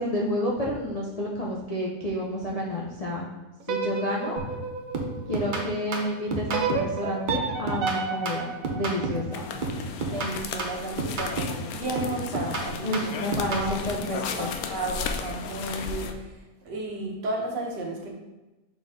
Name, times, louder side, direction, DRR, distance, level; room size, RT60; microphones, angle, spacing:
voice 1, 0.0-3.3 3.7-4.4 5.3-9.5 12.8-14.5, equal, 55° left, -4 dB, 0.4 m, -30 dB
sound 1, 3.6-5.8 6.5-9.6, right 4 dB, 70° right, 0.9 m, -32 dB
sound 2, 4.4-4.6 4.9-7.0 7.3-9.3 9.6-11.7 12.0-13.7, right 3 dB, 45° right, 0.7 m, -31 dB
sound 3, 9.3-16.1, left 6 dB, 70° left, 1.0 m, -35 dB
voice 2, 10.1-14.1 14.4-16.3 16.7-18.1, right 2 dB, 85° right, 0 dB, 1.7 m, -33 dB
6.3 x 4.3 x 3.6 m, 1.1 s
omnidirectional pair, 1.8 m